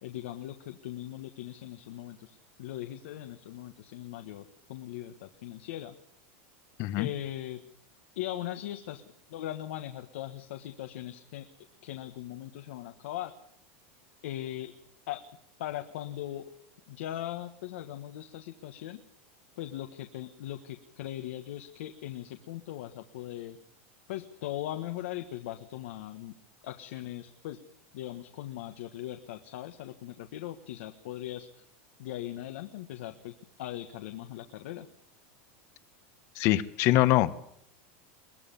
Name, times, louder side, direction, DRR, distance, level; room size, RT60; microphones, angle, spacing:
voice 1, 0.0-5.9 6.9-7.6 8.1-9.0 9.3-11.5 11.8-13.3 14.2-14.7 15.1-15.2 15.6-16.5 16.9-19.0 19.6-23.6 24.1-26.3 26.6-27.6 27.9-31.6 32.0-34.9, left 13 dB, 70° left, 7 dB, 1.5 m, -39 dB
voice 2, 36.4-37.4, left 16 dB, 40° left, 15 dB, 1.1 m, -24 dB
22.5 x 19.0 x 7.1 m, 0.71 s
supercardioid pair, 170°, 7 cm